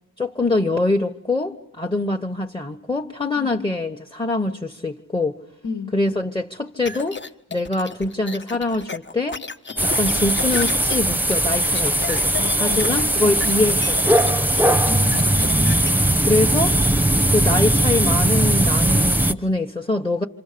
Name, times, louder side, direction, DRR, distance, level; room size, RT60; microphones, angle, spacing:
voice 1, 0.2-5.4 5.9-7.2 7.5-9.4 9.8-12.3 12.6-14.0 16.3-16.9 17.3-20.2, left 2 dB, 15° left, 1.2 m, -24 dB
voice 2, 5.6-6.0 12.4-13.7 14.9-15.9, left 5 dB, 60° left, 1.7 m, -33 dB
sound 1, 6.9-15.9, left 4 dB, 35° left, 1.4 m, -33 dB
sound 2, 9.8-19.3, right 1 dB, 5° right, 1.0 m, -19 dB
28.5 x 27.0 x 6.8 m
wide cardioid pair, 105°, 34 cm